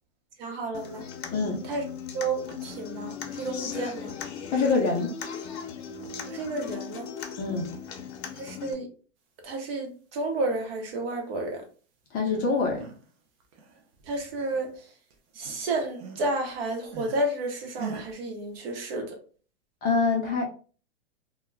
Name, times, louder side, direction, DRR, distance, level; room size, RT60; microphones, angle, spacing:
voice 1, 0.4-1.0 1.6-1.8 2.1-4.1 6.3-7.1 8.4-8.9 9.4-11.6 14.1-14.7 15.4-19.2, right 2 dB, 55° right, 0.9 m, -31 dB
Human voice / Acoustic guitar, 0.7-8.7, left 7 dB, 65° left, 0.7 m, -38 dB
voice 2, 4.5-5.1 7.4-7.7 12.1-12.9 19.8-20.4, left 4 dB, 25° left, 0.5 m, -25 dB
sound 1, 12.5-13.1 13.4-14.8 15.1-17.3 17.8-18.2, right 5 dB, 25° right, 0.4 m, -41 dB
2.2 x 2.1 x 3.3 m
hypercardioid pair, 135°, 35 cm